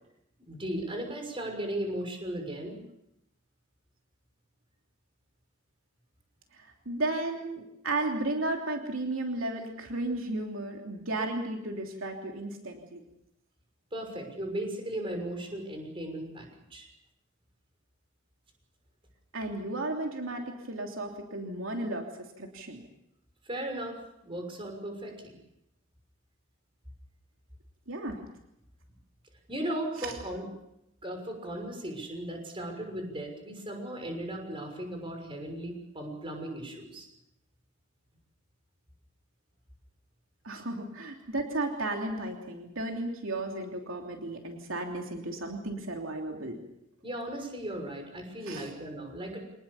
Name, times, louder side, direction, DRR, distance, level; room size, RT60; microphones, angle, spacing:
voice 1, 0.5-2.8 13.9-16.9 23.4-24.0 24.2-25.4 29.5-30.5 31.0-37.1 47.0-49.4, right 1 dB, 25° right, 3 dB, 6.2 m, -36 dB
voice 2, 6.5-13.0 19.3-22.0 22.4-22.8 27.9-28.2 30.0-30.1 40.4-46.6 48.5-48.7, right 2 dB, 75° right, 2 dB, 3.1 m, -34 dB
26.5 x 20.0 x 7.2 m, 0.83 s
head